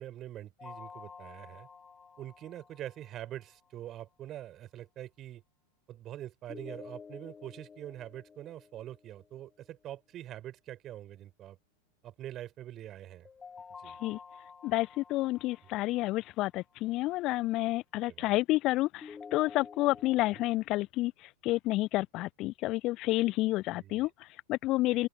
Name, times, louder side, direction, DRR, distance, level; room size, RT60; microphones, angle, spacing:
voice 1, 0.0-1.7 2.2-5.4 5.9-11.6 12.0-13.3 13.8-14.0 18.1-18.3 23.7-24.1, right 12 dB, 30° right, 4.9 m, -44 dB
sound 1, 0.6-3.5 6.5-9.5 13.2-16.5 19.0-20.5, left 5 dB, 15° left, 4.1 m, -50 dB
voice 2, 13.9-14.2 14.6-25.1, left 18 dB, 40° left, 0.5 m, -30 dB
open air
figure-of-eight pair, 90°, 0 cm